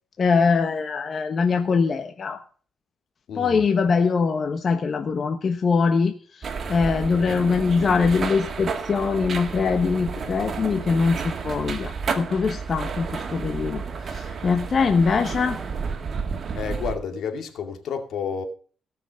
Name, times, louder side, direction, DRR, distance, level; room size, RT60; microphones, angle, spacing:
voice 1, 0.2-2.4 3.4-15.6, left 5 dB, 45° left, 1.2 m, -23 dB
voice 2, 3.3-3.6 16.5-18.4, left 6 dB, 70° left, 2.3 m, -30 dB
sound 1, 6.4-17.0, right 5 dB, 45° right, 2.1 m, -31 dB
18.0 x 6.3 x 6.3 m
cardioid pair, 90°, 0 cm